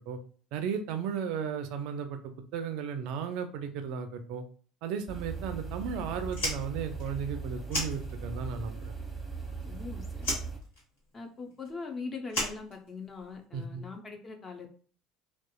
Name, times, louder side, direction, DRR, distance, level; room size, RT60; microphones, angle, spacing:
voice 1, 0.5-4.4 4.8-8.9 13.5-13.8, right 6 dB, 60° right, 8 dB, 0.3 m, -35 dB
sound 1, 5.1-10.6, right 4 dB, 5° right, 0.8 m, -39 dB
Fire, 6.3-8.6 8.8-9.8 10.2-13.4, left 1 dB, 75° left, 1.2 m, -36 dB
voice 2, 9.6-10.3 11.1-14.7, left 4 dB, 30° left, 3 dB, 0.6 m, -41 dB
2.8 x 2.2 x 2.3 m, 0.43 s
hypercardioid pair, 65°, 0 cm